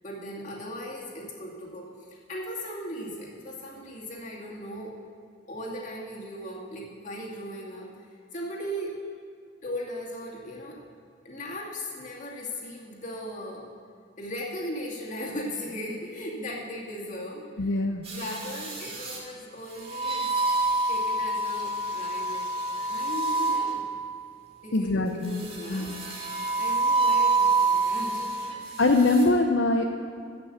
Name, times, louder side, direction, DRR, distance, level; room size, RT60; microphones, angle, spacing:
voice 1, 0.0-4.9 5.5-7.9 8.3-8.9 9.6-10.8 11.2-13.7 14.2-17.8 18.1-22.4 22.9-23.9 24.6-26.0 26.6-28.5, equal, 40° left, -3 dB, 2.4 m, -38 dB
voice 2, 17.6-18.1 24.7-25.4 25.7-26.0 28.8-29.8, left 2 dB, 75° left, 4 dB, 0.6 m, -23 dB
sound 1, 18.1-19.2 19.9-24.1 25.3-28.5 29.0-29.2, right 3 dB, 30° right, 2.0 m, -27 dB
14.0 x 6.0 x 8.0 m, 2.3 s
head